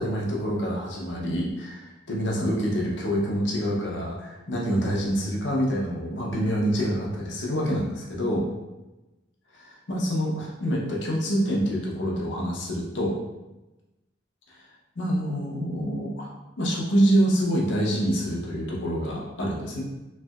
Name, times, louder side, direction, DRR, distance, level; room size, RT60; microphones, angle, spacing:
voice 1, 0.0-8.5 9.5-13.1 14.5-14.6 15.0-16.3 16.6-19.8, equal, 70° left, -2 dB, 0.7 m, -26 dB
3.2 x 2.7 x 2.3 m, 1.0 s
head